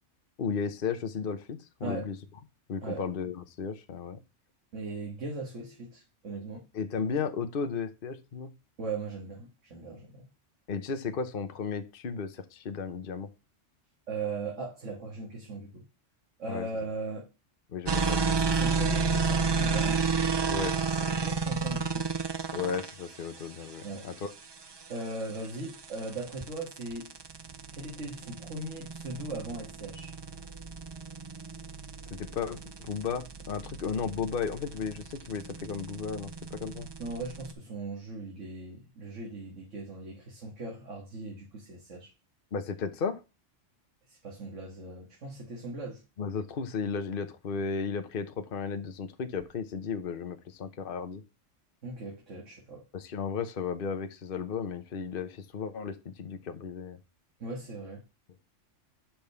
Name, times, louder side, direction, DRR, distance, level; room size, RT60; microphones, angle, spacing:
voice 1, 0.4-2.2 2.7-4.2 6.7-8.5 10.7-13.3 16.5-16.7 17.7-18.8 20.5-20.7 22.5-24.3 32.2-36.3 36.6-36.9 42.5-43.2 46.2-51.2 52.9-57.0, left 5 dB, 50° left, 1.0 m, -34 dB
voice 2, 4.7-6.6 8.8-10.3 14.1-15.8 16.4-17.3 18.5-20.0 21.0-22.1 23.8-24.1 24.9-27.1 27.7-30.1 37.0-42.1 44.1-46.0 51.8-52.8 57.4-58.0, right 3 dB, 80° right, 2.1 m, -38 dB
sound 1, 17.9-37.5, right 4 dB, 40° right, 0.4 m, -32 dB
5.9 x 5.3 x 6.8 m
omnidirectional pair, 1.3 m